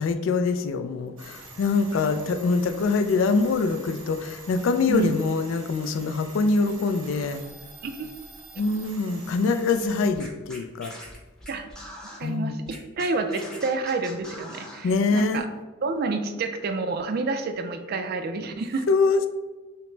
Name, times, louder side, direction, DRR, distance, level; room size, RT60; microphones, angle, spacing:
voice 1, 0.0-7.4 8.6-10.9 12.2-12.6 14.8-15.4 18.9-19.3, left 4 dB, 65° left, 8 dB, 0.3 m, -24 dB
sound 1, 1.2-10.1, right 2 dB, 80° right, 1.0 m, -45 dB
voice 2, 1.9-2.3 4.9-5.1 7.8-8.1 11.5-11.7 12.2-15.5 15.8-18.9, right 3 dB, 50° right, 8 dB, 0.4 m, -29 dB
Scratching (performance technique), 10.1-12.2 12.7-14.8, equal, 5° left, 0.7 m, -42 dB
5.6 x 2.1 x 3.2 m, 1.2 s
head